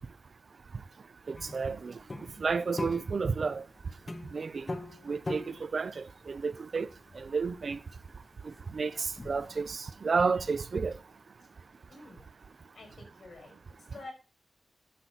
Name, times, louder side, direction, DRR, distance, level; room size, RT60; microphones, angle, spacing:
voice 1, 1.3-1.9 2.4-3.6 4.3-4.7 5.1-6.9 7.2-7.8 8.7-10.9, right 4 dB, 65° right, 0.6 m, -31 dB
sound 1, 1.4-9.6, left 2 dB, 35° left, 1.3 m, -43 dB
voice 2, 11.9-12.3 12.7-13.6 13.9-14.1, left 3 dB, 75° left, 5.7 m, -48 dB
12.0 x 4.1 x 6.1 m
wide cardioid pair, 75°, 0 cm